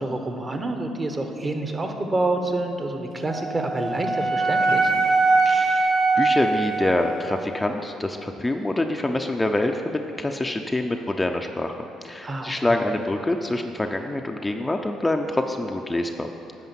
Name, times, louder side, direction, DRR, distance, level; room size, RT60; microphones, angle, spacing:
voice 1, 0.0-4.9 12.2-12.8, right 2 dB, 30° right, 5 dB, 1.0 m, -27 dB
Wind instrument woodwind instrument, 3.3-7.5, right 3 dB, 65° right, 1.1 m, -22 dB
voice 2, 5.5-5.9 6.2-16.3, left 1 dB, 15° left, 4 dB, 0.5 m, -26 dB
9.6 x 5.0 x 7.4 m, 2.8 s
supercardioid pair, 80°, 0 cm